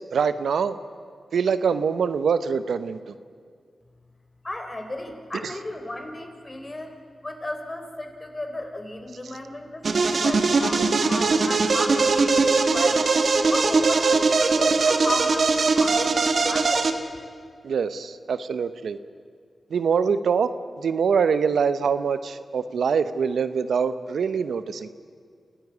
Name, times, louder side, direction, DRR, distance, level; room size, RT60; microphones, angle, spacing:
voice 1, 0.1-0.8 1.3-3.0 5.4-5.5 17.6-19.0 19.7-20.5 20.8-24.9, right 6 dB, 80° right, 12 dB, 0.8 m, -24 dB
voice 2, 4.4-7.0 7.2-13.1 13.5-16.9, left 1 dB, 30° left, 5 dB, 3.9 m, -34 dB
sound 1, 9.8-16.9, right 4 dB, 65° right, 1.8 m, -21 dB
27.5 x 14.0 x 9.5 m, 2.1 s
cardioid pair, 45°, 0 cm